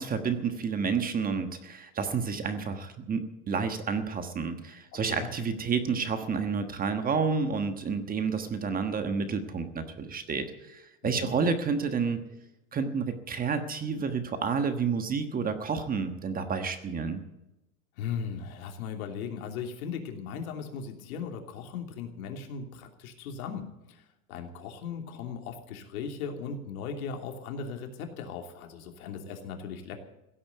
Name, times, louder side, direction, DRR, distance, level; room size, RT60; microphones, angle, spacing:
voice 1, 0.0-12.2 12.7-17.2, right 5 dB, 20° right, 8 dB, 1.3 m, -30 dB
voice 2, 4.9-5.3 11.0-11.3 18.0-30.0, left 6 dB, 80° left, 3 dB, 3.1 m, -38 dB
16.5 x 8.6 x 9.2 m, 0.94 s
supercardioid pair, 145°, 42 cm